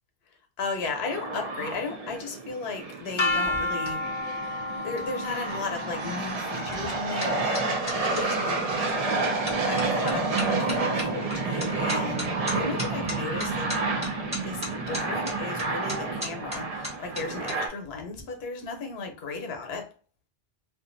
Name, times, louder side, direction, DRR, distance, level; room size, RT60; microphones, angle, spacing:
voice 1, 0.6-4.0 4.8-8.9 9.6-13.7 14.4-19.9, left 4 dB, 85° left, 0.9 m, -35 dB
sound 1, 0.7-17.7, right 3 dB, 50° right, 0.5 m, -30 dB
sound 2, 3.2-9.1, left 2 dB, 40° left, 0.4 m, -33 dB
sound 3, 3.3-8.2 8.9-9.2 9.5-17.5 17.8-18.2, left 1 dB, 5° right, 0.9 m, -38 dB
2.5 x 2.3 x 2.5 m
omnidirectional pair, 1.0 m